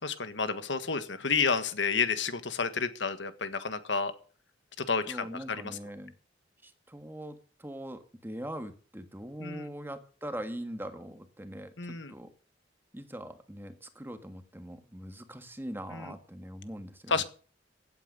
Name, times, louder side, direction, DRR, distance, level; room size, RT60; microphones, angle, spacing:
voice 1, 0.0-4.1 4.8-5.8 9.4-9.7 11.8-12.1 15.9-16.1 17.1-17.2, left 5 dB, 70° left, 11 dB, 1.5 m, -30 dB
voice 2, 5.1-6.1 6.6-11.7 12.1-12.3 12.9-17.2, right 1 dB, 10° right, 8 dB, 1.5 m, -42 dB
16.0 x 9.0 x 6.6 m, 0.40 s
head